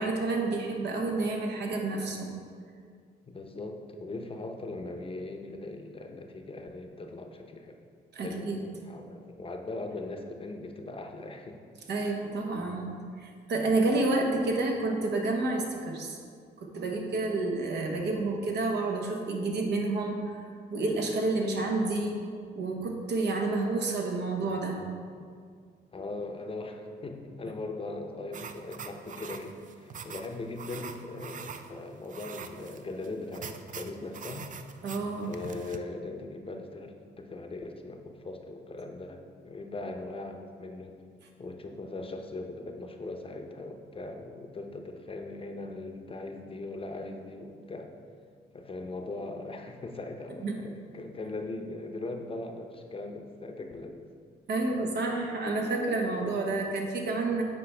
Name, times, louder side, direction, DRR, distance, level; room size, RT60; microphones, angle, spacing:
voice 1, 0.0-2.3 8.1-8.6 11.9-16.2 16.6-20.2 20.7-22.2 22.6-24.9 34.8-35.3 50.4-50.6 54.5-57.4, right 2 dB, 70° right, 2 dB, 1.0 m, -29 dB
voice 2, 3.3-7.8 8.2-11.6 12.0-12.2 25.9-34.5 35.2-41.0 41.4-47.9 48.5-54.0 54.5-54.6, left 2 dB, 30° left, 4 dB, 0.7 m, -40 dB
sound 1, 28.3-35.8, right 6 dB, 45° right, 0.4 m, -44 dB
8.4 x 4.6 x 3.4 m, 2.1 s
cardioid pair, 80°, 18 cm